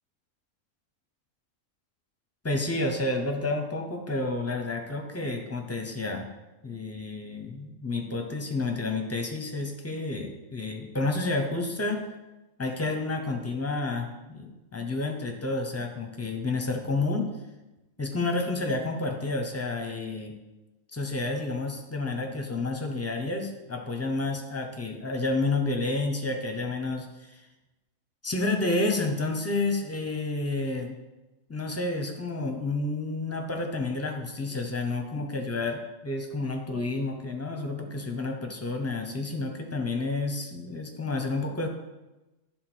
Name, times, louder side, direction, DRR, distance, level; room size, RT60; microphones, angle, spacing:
voice 1, 2.4-6.3 6.6-12.1 12.6-17.3 18.0-20.3 20.9-27.3 28.2-30.9 31.5-41.7, left 2 dB, 15° left, 3 dB, 0.8 m, -30 dB
10.0 x 4.0 x 6.3 m, 1.1 s
omnidirectional pair, 1.5 m